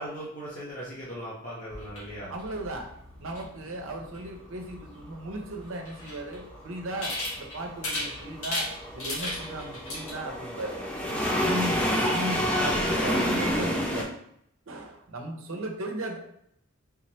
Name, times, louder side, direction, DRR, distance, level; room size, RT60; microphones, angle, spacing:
voice 1, 0.0-2.3, equal, 40° left, -9 dB, 1.0 m, -38 dB
sound 1, 1.7-10.1, left 1 dB, 85° left, 1.4 m, -38 dB
voice 2, 2.3-2.9 3.2-8.7 8.9-10.8 11.1-11.8 12.1-14.1 14.7-16.2, right 1 dB, 75° right, 3 dB, 0.7 m, -36 dB
sound 2, 7.1-14.0, equal, 5° left, 0.5 m, -28 dB
3.6 x 3.2 x 2.9 m, 0.72 s
head